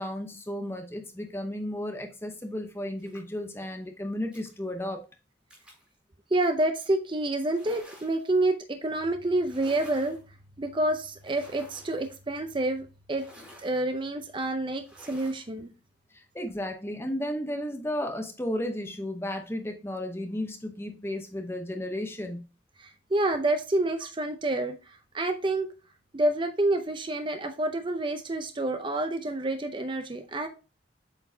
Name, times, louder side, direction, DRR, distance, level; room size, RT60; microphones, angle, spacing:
voice 1, 0.0-5.0 16.1-22.5, left 1 dB, 15° left, 5 dB, 0.8 m, -34 dB
sound 1, 3.0-3.4 4.3-4.5 5.5-5.9 7.4-8.4 9.4-10.2 11.2-12.1 13.1-13.8 14.8-15.5, equal, 5° right, 2.2 m, -51 dB
voice 2, 6.3-15.7 22.8-25.7 26.1-30.5, right 2 dB, 25° right, 7 dB, 0.6 m, -28 dB
7.9 x 4.4 x 2.7 m, 0.32 s
head